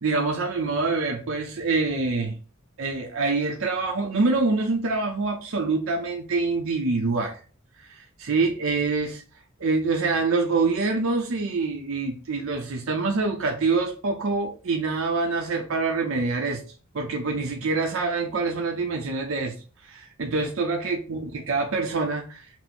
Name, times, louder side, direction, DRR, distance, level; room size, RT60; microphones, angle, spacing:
voice 1, 0.0-2.3 2.8-7.4 7.8-9.2 9.6-16.6 16.9-19.5 19.8-22.6, right 3 dB, 70° right, 2 dB, 0.6 m, -25 dB
4.3 x 2.1 x 4.2 m, 0.38 s
head